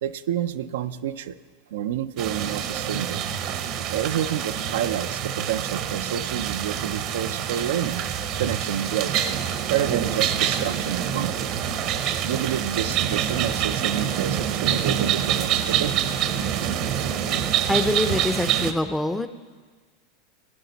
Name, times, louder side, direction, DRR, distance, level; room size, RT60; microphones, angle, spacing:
voice 1, 0.0-1.4 1.7-3.2 3.9-8.0 8.4-9.2 9.7-11.5 12.2-16.0, right 10 dB, 75° right, 10 dB, 0.4 m, -29 dB
sound 1, 2.2-18.7, right 9 dB, 55° right, 0.8 m, -26 dB
voice 2, 17.7-19.3, left 1 dB, 5° left, 11 dB, 0.5 m, -24 dB
16.0 x 10.0 x 4.0 m, 1.5 s
hypercardioid pair, 105°, 0 cm